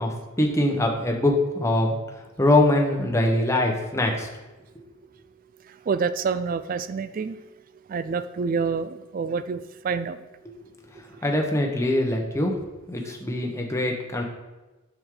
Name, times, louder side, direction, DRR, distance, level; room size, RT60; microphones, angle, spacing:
voice 1, 0.0-2.0 2.4-4.3 11.0-12.5 12.9-14.2, left 1 dB, 15° left, 0 dB, 1.1 m, -23 dB
voice 2, 5.7-7.4 7.9-10.2 11.4-11.5 13.0-13.1, right 5 dB, 45° right, 13 dB, 0.3 m, -28 dB
7.8 x 6.3 x 3.8 m, 1.1 s
head